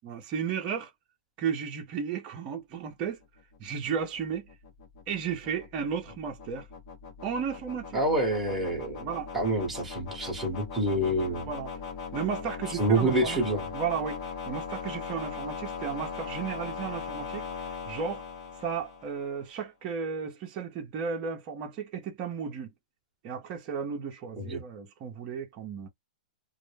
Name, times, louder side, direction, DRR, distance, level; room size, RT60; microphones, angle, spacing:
voice 1, 0.0-0.9 1.4-3.2 3.6-4.5 5.1-6.7 7.2-8.0 9.0-9.3 11.5-11.7 12.1-13.4 13.7-17.5 17.8-18.2 18.6-22.7 23.2-25.9, right 6 dB, 30° right, 0.6 m, -34 dB
sound 1, 3.2-19.4, left 5 dB, 40° left, 0.8 m, -40 dB
voice 2, 7.9-9.0 9.3-11.5 12.8-13.7 24.4-24.6, right 1 dB, 5° right, 1.0 m, -27 dB
2.0 x 2.0 x 3.2 m
hypercardioid pair, 145°, 4 cm